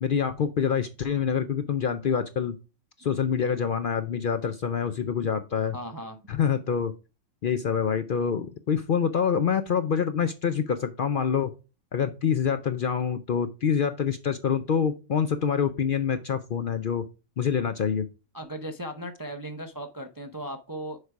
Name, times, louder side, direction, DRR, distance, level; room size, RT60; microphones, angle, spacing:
voice 1, 0.0-2.6 3.0-5.7 6.3-6.9 7.4-11.5 11.9-17.0 17.4-18.1, left 7 dB, 60° left, 10 dB, 0.6 m, -26 dB
voice 2, 5.7-6.2 18.3-21.0, right 1 dB, 30° right, 7 dB, 0.4 m, -37 dB
6.6 x 4.7 x 4.6 m, 0.30 s
omnidirectional pair, 1.3 m